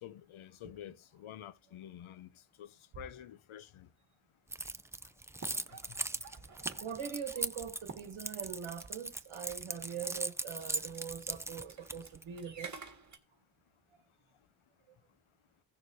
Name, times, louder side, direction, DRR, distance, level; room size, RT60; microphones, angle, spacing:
voice 1, 0.0-2.3 2.6-3.9, left 11 dB, 85° left, 0.7 m, -49 dB
Keys jangling, 4.5-12.2, right 2 dB, 5° right, 0.3 m, -39 dB
sound 1, 5.3-8.9 9.2-9.3 9.5-9.9 10.2-10.3 10.5-10.7 10.9-11.0 11.3-13.2, right 4 dB, 35° right, 1.7 m, -51 dB
voice 2, 6.8-12.8, right 8 dB, 85° right, 1.2 m, -42 dB
16.5 x 6.4 x 2.7 m
cardioid pair, 75°, 47 cm